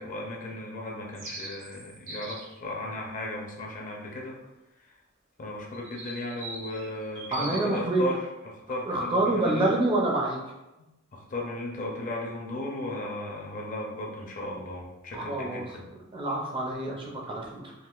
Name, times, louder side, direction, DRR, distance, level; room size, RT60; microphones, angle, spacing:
voice 1, 0.0-4.4 4.8-4.9 5.4-9.8 11.1-15.9, left 1 dB, 40° left, -1 dB, 0.5 m, -36 dB
sound 1, 1.1-2.6 5.7-7.6, right 2 dB, 60° right, 0.7 m, -41 dB
voice 2, 7.3-8.0 8.9-10.4 15.1-15.6 16.1-17.7, right 2 dB, 25° right, -1 dB, 0.4 m, -27 dB
3.7 x 2.4 x 2.4 m, 1.0 s
head